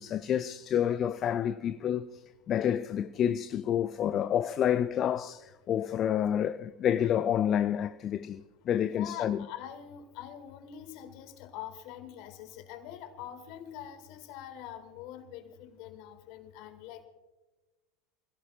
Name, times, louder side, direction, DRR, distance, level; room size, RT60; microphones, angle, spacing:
voice 1, 0.0-9.4, left 9 dB, 35° left, 0.4 m, -29 dB
voice 2, 8.8-17.1, left 10 dB, 50° left, 1.9 m, -44 dB
26.5 x 16.5 x 2.3 m
figure-of-eight pair, 80°, 0 cm